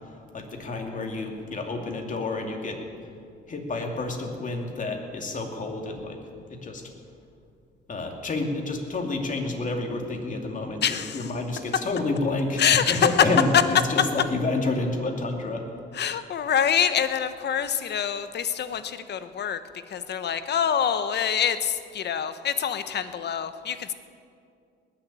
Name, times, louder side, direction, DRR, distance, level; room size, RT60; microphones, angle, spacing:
voice 1, 0.1-2.8 3.5-6.2 6.5-6.8 7.9-15.6, left 2 dB, 40° left, 2 dB, 2.6 m, -29 dB
voice 2, 10.8-11.3 12.6-13.1 15.9-19.6 19.9-23.9, left 8 dB, 60° left, 11 dB, 1.0 m, -26 dB
20.0 x 7.2 x 8.5 m, 2.3 s
cardioid pair, 90°, 20 cm